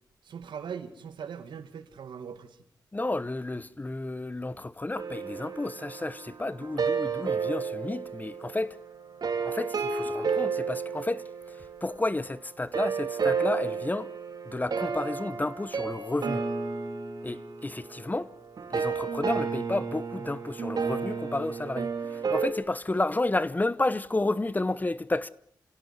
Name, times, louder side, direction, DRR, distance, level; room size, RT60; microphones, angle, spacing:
voice 1, 0.2-2.6, right 7 dB, 80° right, 2.2 m, -40 dB
voice 2, 2.9-8.8 9.4-11.2 11.8-14.1 14.5-16.4 17.2-18.3 18.7-25.3, left 2 dB, 20° left, 0.9 m, -31 dB
sound 1, 5.0-12.2 12.7-22.5, right 5 dB, 60° right, 3.6 m, -32 dB
27.5 x 17.0 x 8.1 m
cardioid pair, 70°, 8 cm